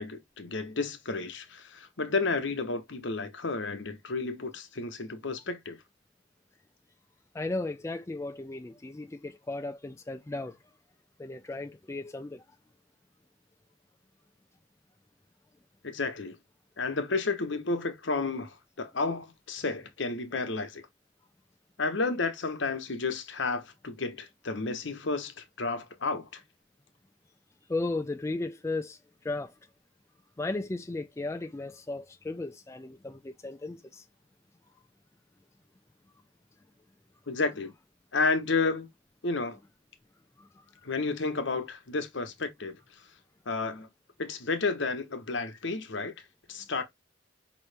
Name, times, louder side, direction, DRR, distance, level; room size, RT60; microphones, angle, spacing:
voice 1, 0.0-5.8 15.8-16.4 16.8-20.8 21.8-26.4 37.3-37.7 38.1-38.9 39.2-39.6 40.8-42.8 43.5-43.9 44.2-46.8, left 3 dB, 70° left, 1.0 m, -31 dB
voice 2, 7.3-10.6 11.2-12.4 27.7-29.0 29.2-29.5 30.4-34.0 40.4-40.5, left 2 dB, 15° left, 0.3 m, -35 dB
5.2 x 3.0 x 3.3 m
head